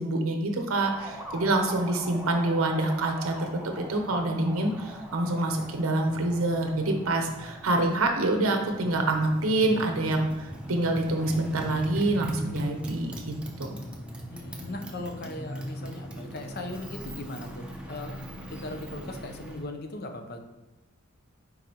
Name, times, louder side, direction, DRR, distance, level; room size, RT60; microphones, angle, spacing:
voice 1, 0.0-13.3 13.6-13.8, right 2 dB, 80° right, 4 dB, 0.7 m, -26 dB
Motorcycle, 0.7-19.7, equal, 5° right, 0.7 m, -40 dB
voice 2, 14.3-18.2 18.5-20.4, left 2 dB, 50° left, 5 dB, 0.7 m, -38 dB
9.6 x 4.0 x 2.9 m, 1.0 s
head